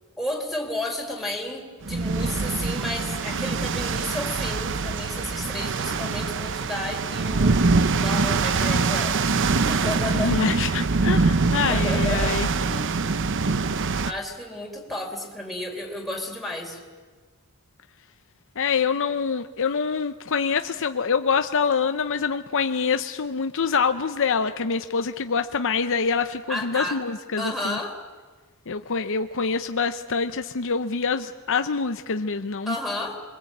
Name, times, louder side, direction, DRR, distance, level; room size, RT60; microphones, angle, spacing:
voice 1, 0.2-7.6 8.0-9.2 9.7-10.4 11.6-12.9 14.0-16.8 26.5-27.0 27.4-28.0 32.7-33.2, left 1 dB, ahead, 2 dB, 4.0 m, -32 dB
sound 1, 1.8-14.1, right 4 dB, 60° right, 0.8 m, -24 dB
voice 2, 10.1-12.5 18.6-27.8 28.7-32.8, left 5 dB, 60° left, 8 dB, 0.7 m, -25 dB
26.0 x 22.5 x 8.6 m, 1.4 s
head